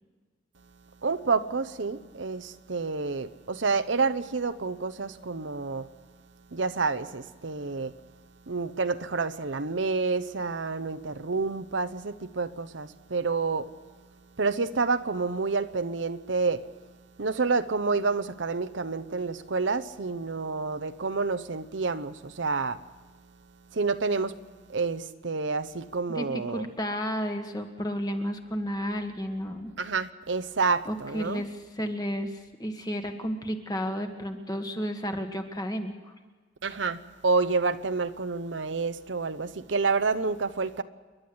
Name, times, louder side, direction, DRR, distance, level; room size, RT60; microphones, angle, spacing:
voice 1, 1.0-5.9 6.5-7.9 8.5-13.7 14.4-16.6 17.2-22.8 23.7-24.4 24.7-26.7 29.8-31.4 36.6-40.8, right 4 dB, 75° right, 0.9 m, -29 dB
voice 2, 26.1-29.7 30.8-36.1, equal, 20° left, 1.6 m, -32 dB
29.0 x 11.5 x 7.9 m
head